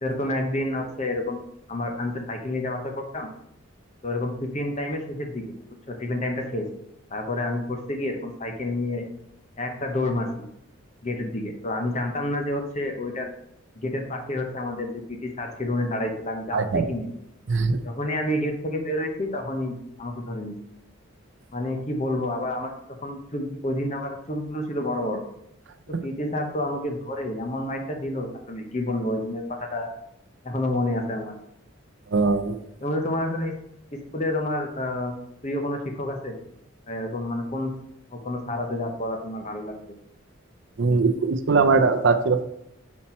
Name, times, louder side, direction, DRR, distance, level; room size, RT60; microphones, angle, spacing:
voice 1, 0.0-1.4 1.7-3.3 4.0-5.5 5.9-6.7 7.1-9.0 9.6-10.3 11.0-13.3 13.8-17.1 17.7-20.5 21.5-22.7 23.0-25.2 25.9-29.9 30.4-31.3 32.8-33.5 33.9-35.1 35.4-36.4 36.9-37.7 38.1-39.7, left 1 dB, 35° left, 3 dB, 0.8 m, -29 dB
voice 2, 16.5-16.8 17.5-17.8 32.1-32.6 40.8-42.4, right 4 dB, 60° right, 9 dB, 0.5 m, -21 dB
5.8 x 4.2 x 4.3 m, 0.79 s
head